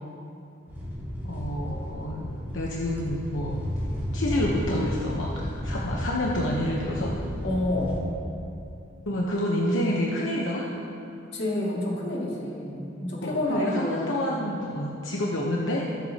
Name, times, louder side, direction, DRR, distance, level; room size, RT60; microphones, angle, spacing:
sound 1, 0.7-8.0, equal, 10° right, 2.7 m, -33 dB
voice 1, 1.2-2.3 2.5-3.7 4.1-7.2 9.1-10.7 13.2-15.9, left 1 dB, 90° left, -3 dB, 1.0 m, -28 dB
voice 2, 7.4-8.3 11.3-14.2, left 1 dB, 65° left, -4 dB, 2.3 m, -29 dB
21.5 x 7.6 x 2.9 m, 2.7 s
head